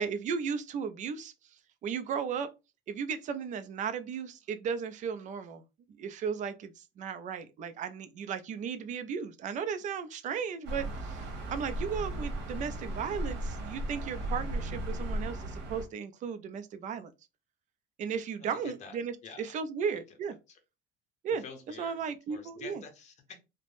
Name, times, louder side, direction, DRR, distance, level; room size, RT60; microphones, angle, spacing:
voice 1, 0.0-1.3 1.8-2.5 2.9-5.6 6.0-17.1 18.0-19.1 19.4-20.3 21.2-21.4 21.8-22.8, right 6 dB, 35° right, 0.4 m, -35 dB
sound 1, 10.6-15.9, right 1 dB, 60° right, 1.1 m, -36 dB
voice 2, 18.4-19.6 20.1-20.2 20.5-20.6 21.3-22.0 22.3-23.4, left 5 dB, 35° left, 0.6 m, -48 dB
3.2 x 2.0 x 2.5 m
cardioid pair, 165°, 21 cm